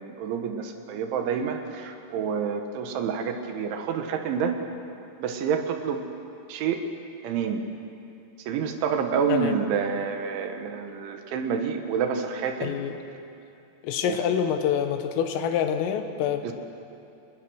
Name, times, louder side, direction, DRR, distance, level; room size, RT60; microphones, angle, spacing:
voice 1, 0.0-4.6 5.2-6.0 6.5-6.8 7.2-7.6 8.5-12.8 14.0-14.2 16.4-16.5, right 6 dB, 75° right, 5 dB, 3.6 m, -28 dB
voice 2, 12.6-13.0 13.8-16.5, left 8 dB, 85° left, 7 dB, 3.9 m, -26 dB
28.0 x 21.0 x 6.4 m, 2.7 s
omnidirectional pair, 5.7 m